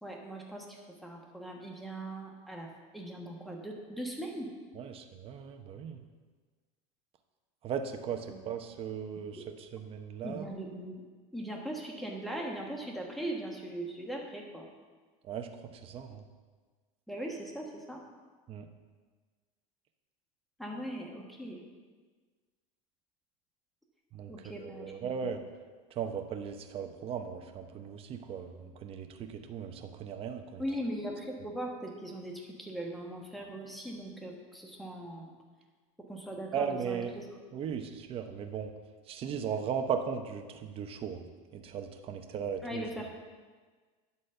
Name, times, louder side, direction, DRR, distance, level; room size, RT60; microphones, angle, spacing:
voice 1, 0.0-4.5 8.3-8.4 9.4-9.5 10.2-11.0 11.3-14.7 17.1-18.0 20.6-21.6 24.3-25.0 30.6-35.3 36.1-37.3 42.6-43.1, right 1 dB, ahead, 0 dB, 1.3 m, -40 dB
voice 2, 4.8-6.0 7.6-10.5 15.3-15.5 15.8-16.2 18.5-18.7 24.1-25.4 26.0-30.6 36.5-37.1 37.5-38.7 39.1-41.2 41.5-42.8, right 7 dB, 35° right, 6 dB, 0.8 m, -37 dB
9.9 x 4.2 x 6.6 m, 1.4 s
supercardioid pair, 135°, 17 cm